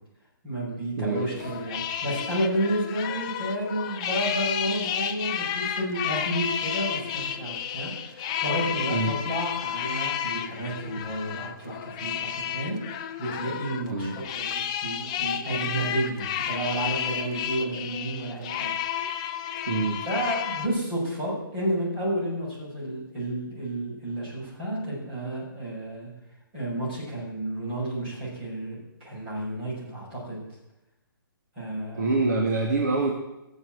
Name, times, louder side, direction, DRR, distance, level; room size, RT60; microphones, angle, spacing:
voice 1, 0.4-18.7 20.1-26.1 26.5-30.4 31.6-32.1, right 1 dB, 20° right, -7 dB, 6.9 m, -31 dB
voice 2, 1.0-1.5 8.9-9.2 13.9-14.2 19.7-20.0 31.9-33.1, right 3 dB, 50° right, 1 dB, 1.7 m, -26 dB
sound 1, 1.1-20.7, left 9 dB, 15° left, 0.5 m, -31 dB
16.0 x 7.5 x 7.9 m, 0.94 s
hypercardioid pair, 175°, 12 cm